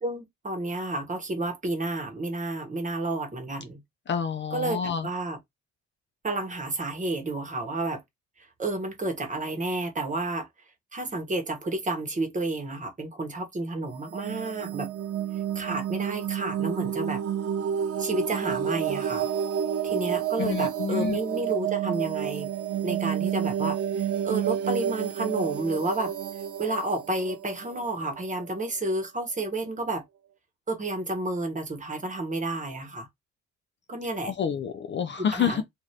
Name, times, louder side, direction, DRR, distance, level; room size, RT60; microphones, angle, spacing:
voice 1, 0.0-3.8 4.5-5.4 6.2-8.0 8.4-10.5 10.9-14.9 15.5-17.2 18.0-19.3 19.8-22.5 22.8-26.1 26.6-30.0 30.7-33.1 33.9-34.3 35.2-35.6, right 2 dB, 25° right, 1.0 m, -31 dB
voice 2, 4.1-5.1 20.4-21.2 34.4-35.6, left 7 dB, 40° left, 0.4 m, -28 dB
sound 1, 13.9-28.6, right 9 dB, 50° right, 0.5 m, -30 dB
2.6 x 2.5 x 3.2 m
cardioid pair, 90°, 30 cm